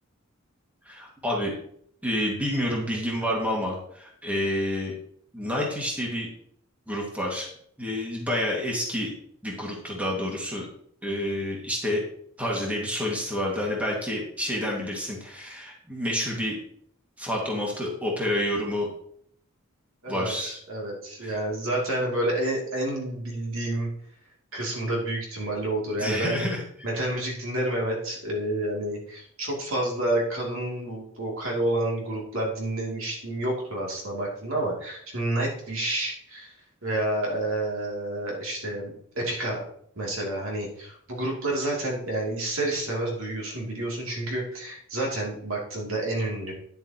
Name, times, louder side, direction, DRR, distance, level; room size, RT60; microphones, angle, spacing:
voice 1, 0.8-1.5 2.0-4.9 5.3-6.3 6.9-7.5 7.8-9.1 9.4-10.7 11.0-12.0 12.4-16.6 17.2-18.9 20.1-20.6 21.2-21.3 26.0-26.6, left 1 dB, 5° right, -3 dB, 1.9 m, -29 dB
voice 2, 20.0-23.9 24.5-26.4 26.8-36.5 36.8-39.7 40.0-46.5, right 1 dB, 70° right, -2 dB, 2.7 m, -29 dB
10.5 x 7.2 x 2.9 m, 0.66 s
head